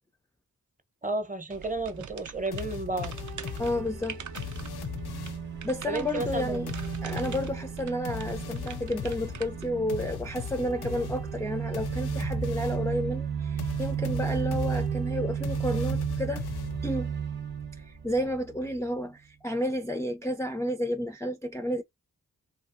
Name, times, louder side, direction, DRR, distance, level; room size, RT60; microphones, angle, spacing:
voice 1, 1.0-3.2 5.9-6.6, right 2 dB, 20° right, 0.8 m, -32 dB
sound 1, 1.5-9.7, right 7 dB, 50° right, 0.5 m, -45 dB
sound 2, 2.5-5.6 6.2-12.9 13.6-17.1, left 8 dB, 85° left, 0.5 m, -39 dB
sound 3, 2.8-18.9, right 7 dB, 90° right, 0.9 m, -34 dB
voice 2, 3.6-4.4 5.6-6.7 7.0-16.4 16.8-17.1 17.8-21.8, left 1 dB, 10° left, 0.4 m, -31 dB
2.6 x 2.4 x 2.5 m
cardioid pair, 40°, 37 cm